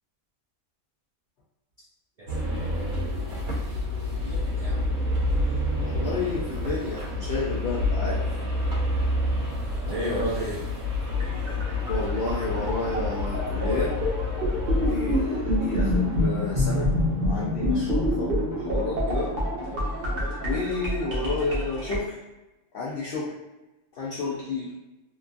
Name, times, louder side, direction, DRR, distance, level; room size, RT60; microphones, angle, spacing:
voice 1, 2.2-3.0 4.2-4.9 9.8-10.7, equal, 70° right, -7 dB, 0.3 m, -33 dB
sound 1, 2.3-17.4, left 1 dB, 90° right, 1.1 m, -29 dB
voice 2, 5.4-8.2 11.3-11.5 11.9-13.9 14.7-16.9 17.2-19.3 20.4-22.2 22.7-23.3 23.9-24.7, left 3 dB, 65° left, -6 dB, 0.6 m, -31 dB
sound 2, 11.1-22.0, left 1 dB, 50° right, 0.9 m, -27 dB
3.0 x 2.3 x 2.4 m, 1.0 s
omnidirectional pair, 1.5 m